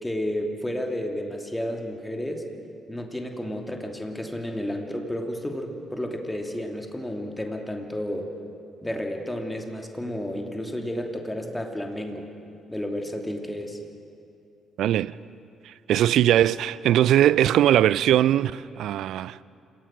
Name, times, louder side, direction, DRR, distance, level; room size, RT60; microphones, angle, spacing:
voice 1, 0.0-2.4 2.9-8.3 8.8-12.3 12.7-13.8, left 1 dB, 10° left, 2.8 m, -31 dB
voice 2, 14.8-15.1 15.7-19.4, right 12 dB, 60° right, 0.4 m, -20 dB
27.0 x 17.5 x 6.3 m
figure-of-eight pair, 45°, 0 cm